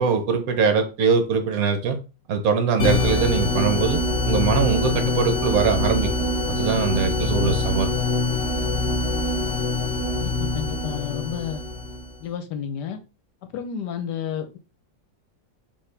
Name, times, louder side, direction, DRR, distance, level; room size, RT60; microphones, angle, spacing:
voice 1, 0.0-2.0 2.3-6.1 6.5-7.9, right 5 dB, 60° right, 1.2 m, -22 dB
sound 1, 2.8-12.2, left 2 dB, 55° left, 0.9 m, -24 dB
voice 2, 10.2-11.6 12.2-13.0 13.5-14.6, left 8 dB, 75° left, 1.3 m, -31 dB
4.7 x 3.0 x 3.3 m
omnidirectional pair, 1.9 m